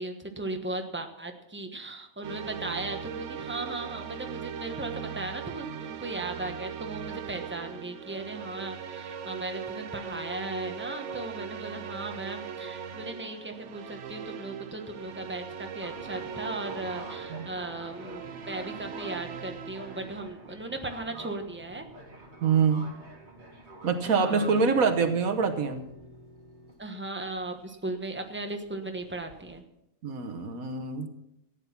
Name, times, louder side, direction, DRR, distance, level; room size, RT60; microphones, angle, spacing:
voice 1, 0.0-21.9 24.1-24.6 26.8-29.6, right 2 dB, 10° right, 4 dB, 1.2 m, -37 dB
sound 1, 2.2-20.2, right 7 dB, 60° right, 1.1 m, -39 dB
sound 2, 15.8-29.6, right 1 dB, 35° right, 2.0 m, -48 dB
voice 2, 22.4-22.9 23.8-25.8 30.0-31.1, right 5 dB, 85° right, 8 dB, 1.6 m, -25 dB
14.5 x 9.6 x 5.9 m, 0.84 s
omnidirectional pair, 1.5 m